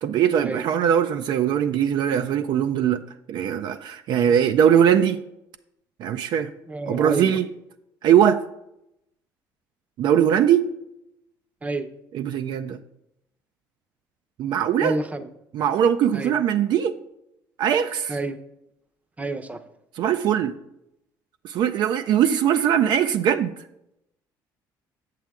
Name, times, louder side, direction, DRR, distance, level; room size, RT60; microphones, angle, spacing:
voice 1, 0.0-3.0 3.3-5.2 6.0-6.5 6.9-7.5 8.0-8.4 10.0-10.7 12.1-12.8 14.4-15.0 15.5-17.0 17.6-18.2 20.0-20.5 21.4-23.5, right 9 dB, 65° right, 9 dB, 0.4 m, -21 dB
voice 2, 6.7-7.4 11.6-11.9 14.8-15.3 16.1-16.4 18.1-18.4 19.2-19.6, right 2 dB, 20° right, 11 dB, 0.7 m, -28 dB
7.5 x 7.3 x 3.5 m, 0.83 s
supercardioid pair, 85°, 8 cm